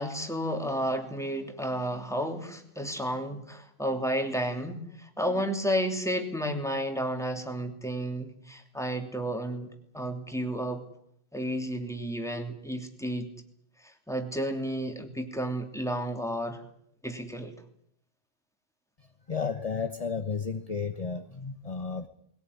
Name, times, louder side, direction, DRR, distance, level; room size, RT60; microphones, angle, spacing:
voice 1, 0.0-10.8 11.3-13.3 13.8-16.6 17.0-17.5, equal, 5° left, 4 dB, 3.0 m, -32 dB
voice 2, 19.3-22.1, left 5 dB, 35° left, 7 dB, 1.2 m, -32 dB
21.5 x 17.5 x 9.8 m, 0.69 s
omnidirectional pair, 1.1 m